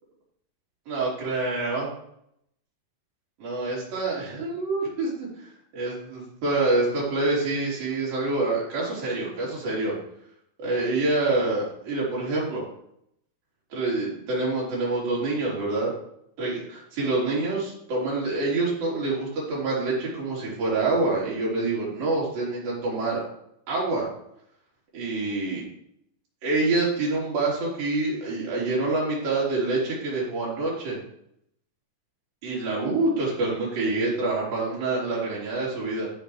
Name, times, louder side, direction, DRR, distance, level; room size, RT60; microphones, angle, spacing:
voice 1, 0.9-1.9 3.4-5.1 5.4-5.5 5.7-10.0 10.6-12.6 13.7-15.9 16.4-23.2 23.7-24.1 24.9-25.6 26.4-31.0 32.4-36.1, right 2 dB, 80° right, -6 dB, 5.3 m, -26 dB
15.0 x 5.7 x 3.3 m, 0.72 s
omnidirectional pair, 4.0 m